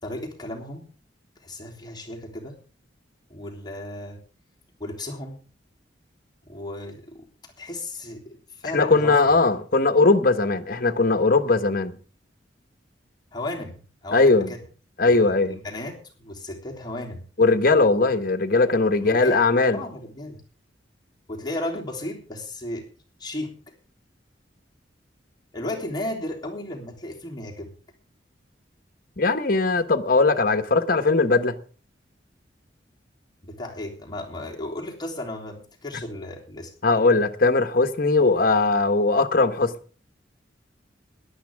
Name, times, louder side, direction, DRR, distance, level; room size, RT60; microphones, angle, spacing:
voice 1, 0.0-0.9 1.4-2.6 3.3-4.2 4.8-5.4 6.5-7.3 7.6-9.3 13.3-13.8 14.0-14.6 15.0-17.2 19.0-19.5 19.7-20.4 21.3-22.9 23.2-23.5 25.5-27.7 33.4-36.7, left 1 dB, 25° left, 3.4 m, -34 dB
voice 2, 8.7-12.0 14.1-14.5 15.0-15.6 17.4-19.8 29.2-31.6 36.8-39.7, left 3 dB, 55° left, 1.4 m, -19 dB
17.5 x 11.5 x 3.6 m
head